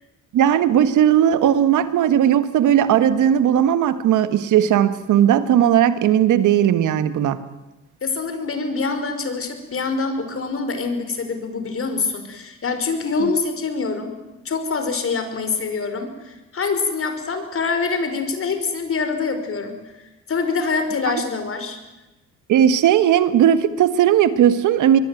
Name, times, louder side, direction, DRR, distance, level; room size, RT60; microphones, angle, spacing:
voice 1, 0.3-7.4 13.2-13.3 21.1-21.2 22.5-25.0, right 10 dB, 80° right, 12 dB, 1.7 m, -17 dB
voice 2, 8.0-14.1 14.5-19.8 20.3-21.8, left 4 dB, 45° left, 8 dB, 5.4 m, -25 dB
24.0 x 22.0 x 9.3 m, 1.1 s
cardioid pair, 90°, 30 cm